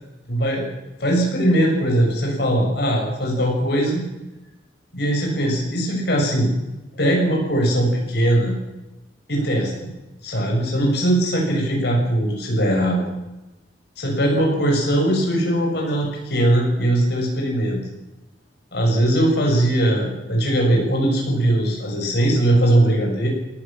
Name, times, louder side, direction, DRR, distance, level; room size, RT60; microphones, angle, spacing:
voice 1, 0.3-0.6 1.0-4.1 4.9-6.5 6.9-8.6 9.3-9.7 10.2-13.0 14.0-17.8 18.7-23.3, right 1 dB, 65° left, 0 dB, 7.3 m, -20 dB
19.5 x 17.5 x 7.6 m, 0.99 s
head